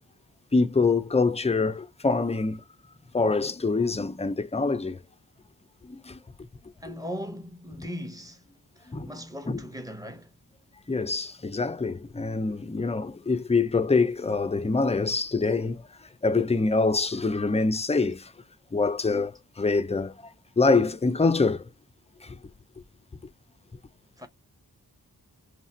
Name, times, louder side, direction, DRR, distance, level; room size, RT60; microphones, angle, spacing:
voice 1, 0.5-2.6 3.1-5.0 5.8-6.2 8.9-9.1 9.5-9.6 10.9-15.8 16.2-18.3 18.7-20.3 20.6-21.7 22.2-22.4, left 3 dB, 15° left, 0.5 m, -25 dB
voice 2, 6.8-8.4 8.8-10.3 24.2-24.3, equal, 10° right, 1.0 m, -38 dB
3.2 x 2.4 x 4.3 m
cardioid pair, 40°, 40 cm